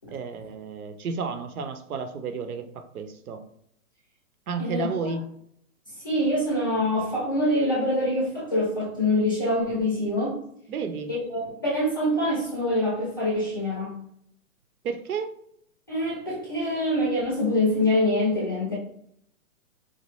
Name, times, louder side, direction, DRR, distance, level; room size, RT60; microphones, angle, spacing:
voice 1, 0.1-3.4 4.5-5.3 10.7-11.1 14.8-15.3, right 5 dB, 80° right, 9 dB, 0.8 m, -32 dB
voice 2, 4.6-5.1 6.0-10.4 11.1-14.0 15.9-18.8, left 1 dB, 15° left, -5 dB, 0.5 m, -25 dB
4.3 x 2.3 x 3.0 m, 0.70 s
hypercardioid pair, 170°, 43 cm